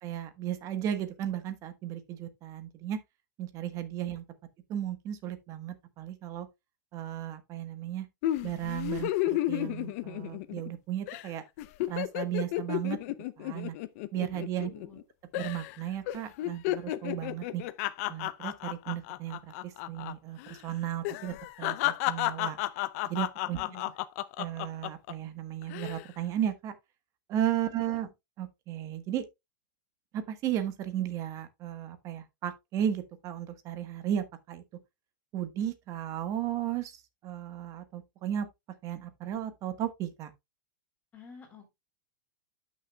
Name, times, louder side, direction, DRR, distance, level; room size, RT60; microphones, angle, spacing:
voice 1, 0.0-3.0 3.4-4.2 4.7-6.5 6.9-8.1 8.4-11.4 11.9-13.0 13.4-13.7 14.1-14.7 15.4-17.6 18.1-22.6 23.0-23.6 24.4-26.7 27.3-28.1 28.4-29.2 30.1-34.6 35.3-38.5 38.8-40.3, right 11 dB, 30° right, 1.2 m, -35 dB
sound 1, 8.2-10.8 11.1-11.3 11.6-15.0 15.3-15.8 16.1-20.1 20.4-20.6 21.0-25.1 25.6-26.0, left 16 dB, 45° left, 0.6 m, -32 dB
voice 2, 14.3-15.0 23.5-23.9 41.1-41.7, left 4 dB, 15° left, 3.6 m, -49 dB
11.5 x 6.4 x 2.3 m
supercardioid pair, 150°, 11 cm